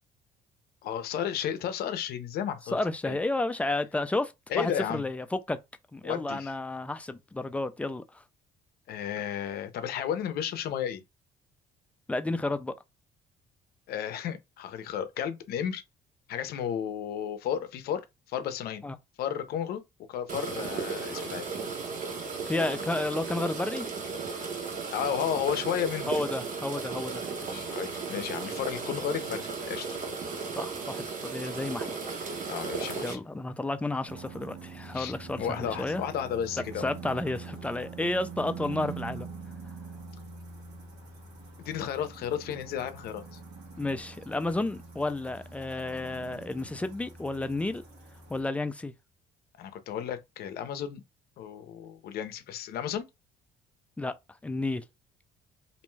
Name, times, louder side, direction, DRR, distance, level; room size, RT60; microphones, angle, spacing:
voice 1, 0.8-2.8 3.0-3.2 4.5-5.0 6.0-6.5 8.9-11.0 13.9-15.8 16.3-18.8 19.2-19.8 20.1-21.5 24.9-26.1 27.5-29.9 32.5-33.2 34.9-36.9 41.6-43.4 49.6-51.0 51.4-53.0, left 9 dB, 65° left, 0.5 m, -33 dB
voice 2, 2.7-5.6 5.9-8.2 12.1-12.7 18.8-19.0 22.5-23.9 26.1-27.2 30.6-32.5 33.0-36.0 36.8-39.3 43.8-47.8 48.3-48.9 54.0-54.2 54.4-54.8, left 2 dB, 10° left, 0.3 m, -31 dB
sound 1, 20.3-33.1, right 5 dB, 50° right, 0.9 m, -35 dB
sound 2, 34.1-48.4, right 5 dB, 75° right, 1.0 m, -44 dB
2.5 x 2.2 x 3.1 m
cardioid pair, 110°, 17 cm